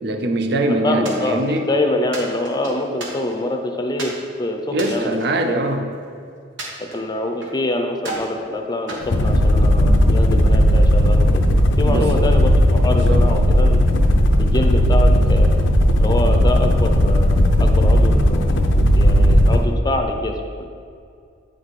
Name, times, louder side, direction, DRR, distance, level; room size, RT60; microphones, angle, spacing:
voice 1, 0.0-1.6 4.7-5.9 11.8-12.2 12.9-13.2, right 1 dB, 60° right, 5 dB, 0.6 m, -22 dB
voice 2, 0.7-5.2 5.5-5.6 6.9-11.4 11.8-13.8 14.4-15.6 16.0-18.6 18.9-20.6, left 1 dB, 20° left, 4 dB, 0.6 m, -25 dB
sound 1, 1.0-1.7 2.1-3.5 4.0-4.2 4.7-6.0 6.6-7.6 8.0-8.4 8.9-9.9, right 2 dB, 85° right, 1.3 m, -34 dB
sound 2, 9.0-19.7, equal, 90° left, 0.6 m, -15 dB
8.6 x 4.8 x 4.2 m, 2.4 s
head